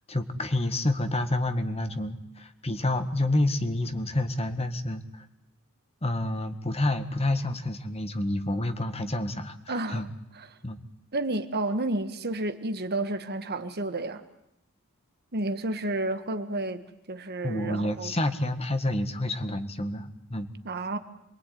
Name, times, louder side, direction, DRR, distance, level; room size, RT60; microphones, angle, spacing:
voice 1, 0.1-5.2 6.0-10.1 10.6-10.8 17.4-20.5, left 1 dB, 30° left, 9 dB, 1.8 m, -29 dB
voice 2, 9.7-10.1 10.3-10.5 11.1-14.2 15.3-18.1 20.6-21.0, right 2 dB, 50° right, 9 dB, 1.6 m, -31 dB
27.5 x 22.5 x 9.5 m, 0.80 s
head